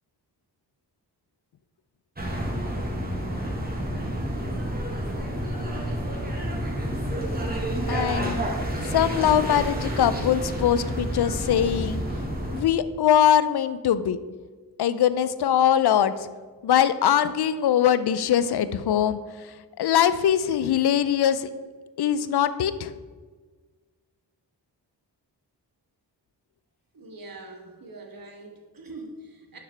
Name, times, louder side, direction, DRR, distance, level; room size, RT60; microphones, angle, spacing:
sound 1, 2.2-12.6, right 1 dB, 20° right, 1.5 m, -29 dB
voice 1, 7.9-8.4 8.9-12.0 12.5-14.2 14.8-16.1 16.6-21.5 22.0-22.9, left 9 dB, 65° left, 14 dB, 0.5 m, -22 dB
voice 2, 26.9-29.6, right 2 dB, 50° right, 3 dB, 1.2 m, -43 dB
6.1 x 6.0 x 3.3 m, 1.4 s
cardioid pair, 50°, 44 cm